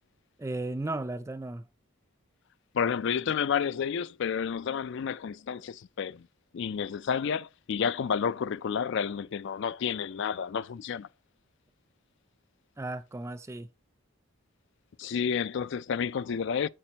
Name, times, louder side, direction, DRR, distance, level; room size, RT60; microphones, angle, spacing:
voice 1, 0.4-1.6 12.8-13.7, right 2 dB, 15° right, 0.3 m, -35 dB
voice 2, 2.7-6.3 6.5-11.1 15.0-16.7, left 7 dB, 55° left, 0.4 m, -30 dB
8.7 x 7.5 x 2.8 m
head